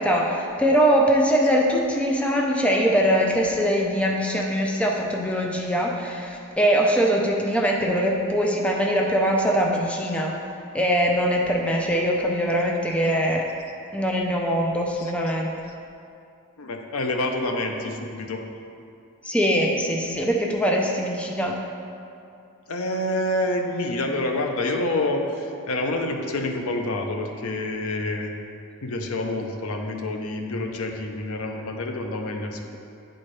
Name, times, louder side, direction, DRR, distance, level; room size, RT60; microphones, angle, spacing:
voice 1, 0.0-10.4 10.7-13.4 13.9-15.5 19.2-21.6, equal, 5° left, -1 dB, 0.4 m, -22 dB
voice 2, 16.6-18.4 22.7-28.3 28.8-32.8, left 2 dB, 70° left, 3 dB, 0.6 m, -27 dB
9.7 x 4.3 x 3.3 m, 2.5 s
head